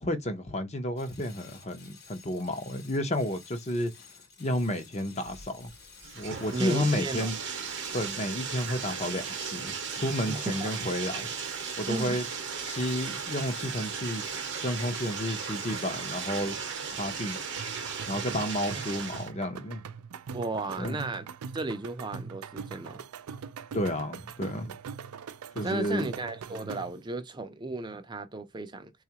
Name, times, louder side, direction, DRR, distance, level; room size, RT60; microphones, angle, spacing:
voice 1, 0.0-3.9 4.4-5.7 6.1-7.4 7.9-11.3 11.8-12.2 12.6-16.5 16.9-17.4 18.1-19.8 20.8-21.0 23.7-24.8 25.5-26.1, left 1 dB, 30° left, 0.7 m, -31 dB
sound 1, 1.0-16.7, left 6 dB, 45° left, 1.0 m, -53 dB
Bathtub (filling or washing), 5.3-19.3, right 6 dB, 55° right, 0.8 m, -36 dB
voice 2, 6.5-7.3 10.3-10.7 11.9-12.3 18.7-18.8 20.3-21.3 21.5-23.0 25.6-28.9, right 2 dB, 20° right, 0.4 m, -34 dB
sound 2, 17.6-27.1, right 6 dB, 90° right, 0.4 m, -42 dB
3.9 x 2.4 x 2.8 m
head